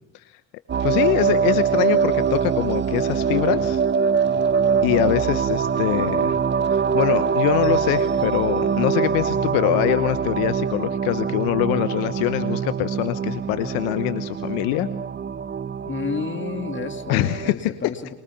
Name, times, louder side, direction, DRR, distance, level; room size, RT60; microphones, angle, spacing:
sound 1, 0.7-17.5, right 6 dB, 30° right, 0.8 m, -23 dB
voice 1, 0.8-3.8 4.8-6.4 6.7-14.9 17.1-17.9, left 16 dB, 70° left, 13 dB, 1.0 m, -24 dB
voice 2, 15.8-18.1, left 5 dB, 30° left, 7 dB, 2.5 m, -31 dB
23.5 x 22.5 x 7.0 m, 0.94 s
hypercardioid pair, 60°, 37 cm